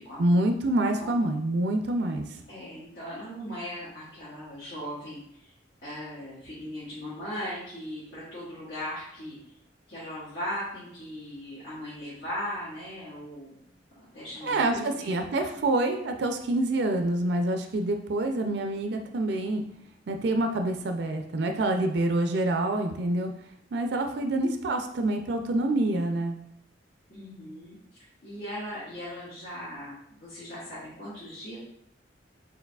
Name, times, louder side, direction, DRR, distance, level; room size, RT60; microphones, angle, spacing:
voice 1, 0.2-2.4 14.4-19.6 20.1-23.3 23.7-26.4, right 2 dB, 65° right, 5 dB, 0.4 m, -26 dB
voice 2, 2.5-5.5 5.8-9.4 9.9-13.6 13.9-15.5 27.1-27.8 28.2-31.6, equal, 70° left, -11 dB, 1.5 m, -38 dB
4.6 x 3.8 x 2.3 m, 0.73 s
head